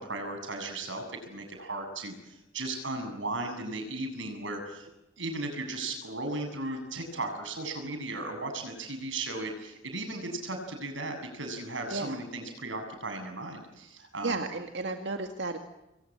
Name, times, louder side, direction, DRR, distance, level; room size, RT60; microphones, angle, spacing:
voice 1, 0.0-4.9 5.2-14.4, right 2 dB, 90° right, 5 dB, 7.9 m, -36 dB
voice 2, 14.2-15.6, right 3 dB, 70° right, 5 dB, 2.1 m, -33 dB
28.0 x 22.5 x 8.8 m, 0.95 s
head